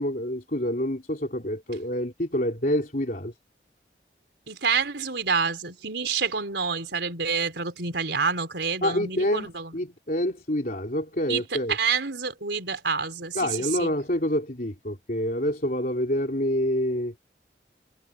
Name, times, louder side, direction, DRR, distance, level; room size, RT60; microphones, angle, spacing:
voice 1, 0.0-3.3 8.8-11.8 13.4-17.1, left 1 dB, 50° left, 3.7 m, -27 dB
voice 2, 4.5-9.8 11.3-13.9, right 5 dB, 80° right, 3.8 m, -28 dB
head